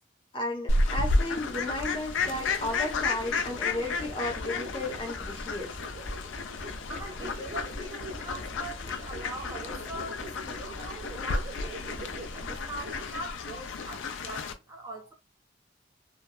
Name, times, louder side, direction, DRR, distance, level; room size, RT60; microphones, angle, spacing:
voice 1, 0.3-5.8, left 1 dB, 25° left, 0.7 m, -34 dB
Fowl, 0.7-14.5, left 3 dB, 85° left, 0.4 m, -32 dB
sound 1, 1.7-13.3, equal, 70° right, 1.2 m, -42 dB
voice 2, 6.9-15.1, right 2 dB, 20° right, 0.5 m, -42 dB
2.9 x 2.0 x 2.3 m
head